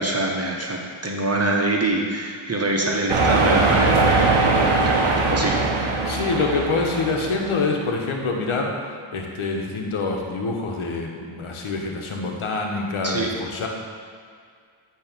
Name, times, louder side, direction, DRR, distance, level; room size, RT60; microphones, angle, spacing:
voice 1, 0.0-6.2 13.0-13.3, right 2 dB, 30° right, -1 dB, 1.5 m, -25 dB
sound 1, 3.1-7.6, right 3 dB, 85° right, 1.1 m, -21 dB
voice 2, 6.1-8.7 9.1-13.7, left 3 dB, 75° left, 1 dB, 1.2 m, -26 dB
8.9 x 3.3 x 6.7 m, 2.1 s
cardioid pair, 45°, 49 cm